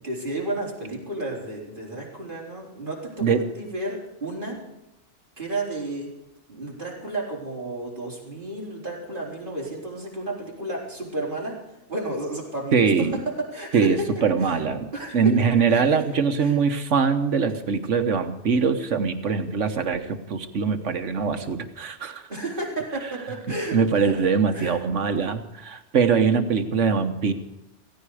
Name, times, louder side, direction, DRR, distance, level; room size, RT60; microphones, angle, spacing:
voice 1, 0.0-4.6 5.4-6.1 6.5-11.6 11.9-14.1 14.4-14.6 14.9-15.2 15.7-15.8 16.4-16.5 22.3-24.2 24.5-24.8, right 2 dB, 45° right, -3 dB, 4.3 m, -32 dB
voice 2, 12.7-13.2 13.7-22.3 23.7-27.3, right 5 dB, 90° right, 9 dB, 1.5 m, -22 dB
16.5 x 16.5 x 4.9 m, 0.94 s
omnidirectional pair, 1.2 m